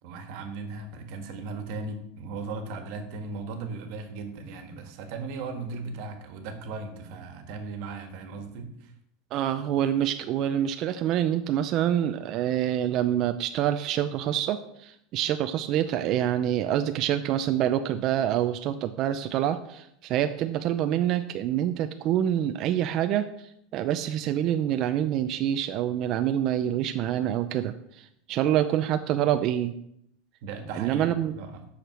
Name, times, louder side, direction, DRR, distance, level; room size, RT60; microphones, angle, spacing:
voice 1, 0.0-8.9 30.4-31.7, right 4 dB, 60° right, 7 dB, 1.6 m, -37 dB
voice 2, 9.3-29.7 30.7-31.3, right 11 dB, 45° right, 9 dB, 0.5 m, -26 dB
8.1 x 6.6 x 5.9 m, 0.75 s
supercardioid pair, 150°, 0 cm